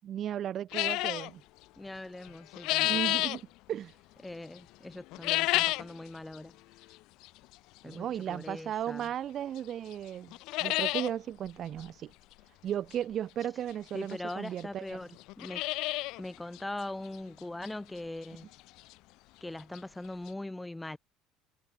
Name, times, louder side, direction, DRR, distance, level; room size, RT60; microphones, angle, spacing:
voice 1, 0.0-1.4 2.8-3.9 7.8-12.1 12.6-15.0, right 10 dB, 50° right, 5.8 m, -35 dB
sound 1, 0.7-1.3 2.2-3.4 5.1-5.9 6.3-6.4 7.2-7.3 9.0-9.1 9.6-9.7 9.9-10.0 10.3-11.1 11.5-11.6 11.8-11.9 13.4-13.5 14.3-14.4 14.6-14.7 15.2-16.2 16.5-16.6 17.1-17.2 17.7-17.8 19.5-19.6 19.7-19.8 20.3-20.4, left 20 dB, 70° left, 0.5 m, -30 dB
voice 2, 1.8-3.0 4.2-6.6 7.8-9.1 13.9-15.6 16.2-18.5 19.4-21.0, left 2 dB, 10° left, 5.5 m, -41 dB
hypercardioid pair, 70°, 0 cm